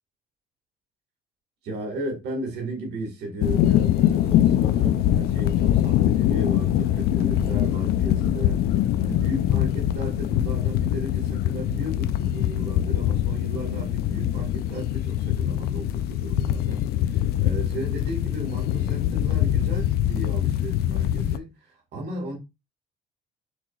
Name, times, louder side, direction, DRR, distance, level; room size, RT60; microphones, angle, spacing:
voice 1, 1.6-8.6 9.0-22.4, right 1 dB, 75° right, 1.8 m, -35 dB
sound 1, 3.4-21.4, left 12 dB, 70° left, 0.4 m, -23 dB
6.0 x 3.0 x 2.3 m
cardioid pair, 110°, 17 cm